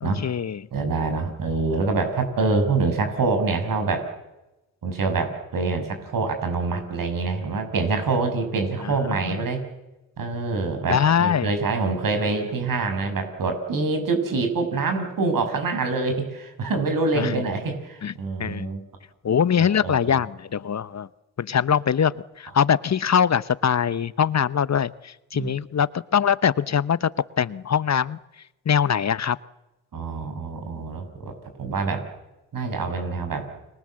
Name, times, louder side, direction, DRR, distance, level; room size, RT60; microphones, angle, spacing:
voice 1, 0.0-0.7 8.8-9.4 10.9-11.5 12.3-12.5 17.1-17.4 18.0-18.1 18.4-18.7 19.2-21.1 21.4-27.1 27.4-28.2 28.6-29.4 30.8-30.9, left 8 dB, 50° left, 17 dB, 1.0 m, -23 dB
voice 2, 0.7-4.1 4.8-9.6 10.2-18.8 19.6-20.2 25.3-25.5 29.9-32.1 32.5-33.5, right 3 dB, 65° right, 6 dB, 6.6 m, -25 dB
30.0 x 22.5 x 7.8 m, 0.98 s
supercardioid pair, 40°, 35 cm